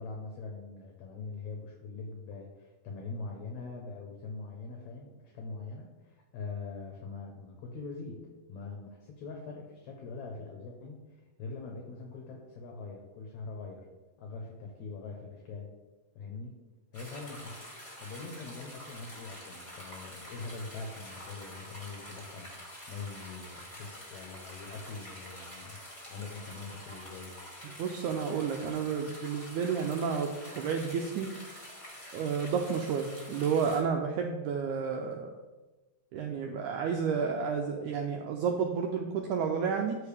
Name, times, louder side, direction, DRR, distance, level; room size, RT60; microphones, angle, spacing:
voice 1, 0.0-8.2 8.5-13.9 14.2-15.7 16.2-16.6 16.9-17.6 18.0-22.5 22.9-27.3, left 4 dB, 65° left, 1 dB, 2.0 m, -43 dB
sound 1, 16.9-33.8, equal, 10° left, 1.7 m, -47 dB
voice 2, 27.8-30.3 30.6-31.3 32.1-35.3 36.1-40.0, right 6 dB, 90° right, 3 dB, 1.7 m, -31 dB
13.0 x 5.2 x 3.5 m, 1.2 s
omnidirectional pair, 4.2 m